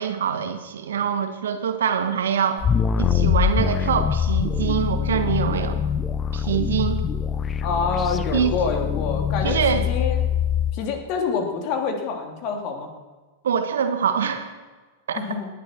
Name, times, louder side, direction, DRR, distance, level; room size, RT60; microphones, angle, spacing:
voice 1, 0.0-2.7 3.0-5.8 6.3-7.0 8.3-8.6 9.4-9.8 13.4-14.5 15.1-15.2, right 7 dB, 70° right, 8 dB, 1.6 m, -24 dB
sound 1, 2.6-10.7, left 7 dB, 25° left, 0.9 m, -23 dB
voice 2, 7.6-10.3 10.7-12.9 15.1-15.5, left 5 dB, 45° left, 3 dB, 3.0 m, -27 dB
19.0 x 11.5 x 4.6 m, 1.4 s
figure-of-eight pair, 95°, 0 cm